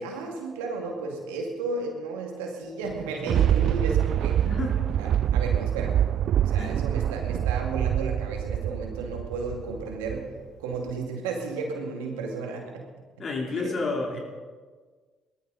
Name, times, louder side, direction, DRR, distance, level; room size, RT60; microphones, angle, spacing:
voice 1, 0.0-4.4 5.0-6.0 6.4-10.3 10.6-12.9 13.5-13.7, right 3 dB, 85° right, 1 dB, 2.2 m, -33 dB
Thunder, 2.8-10.4 10.9-11.0, right 10 dB, 65° right, 0.3 m, -25 dB
voice 2, 4.4-4.8 6.6-6.8 13.2-14.2, left 3 dB, 45° left, 0 dB, 3.5 m, -30 dB
19.0 x 13.5 x 4.1 m, 1.5 s
hypercardioid pair, 55°, 0 cm